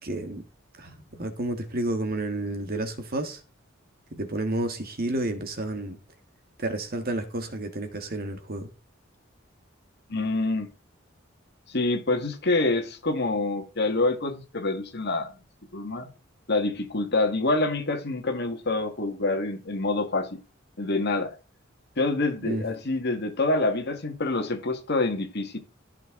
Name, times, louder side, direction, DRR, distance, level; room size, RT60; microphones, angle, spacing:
voice 1, 0.0-0.4 0.8-3.4 4.1-6.0 6.6-8.7 22.4-22.6, right 2 dB, 50° right, 1.6 m, -31 dB
voice 2, 10.1-10.7 11.7-15.3 15.7-16.1 16.5-20.4 20.8-21.3 22.0-25.6, left 2 dB, 55° left, 1.8 m, -26 dB
14.5 x 6.4 x 3.8 m
head